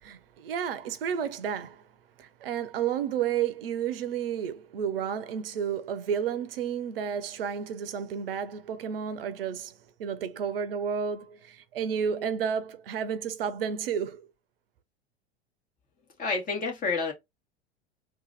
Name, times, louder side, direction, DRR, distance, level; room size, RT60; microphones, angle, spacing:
voice 1, 0.0-1.8 2.2-14.3, right 8 dB, 60° right, 0.8 m, -31 dB
voice 2, 16.2-17.1, left 4 dB, 25° left, 2.0 m, -29 dB
3.9 x 2.6 x 3.9 m
figure-of-eight pair, 85°, 32 cm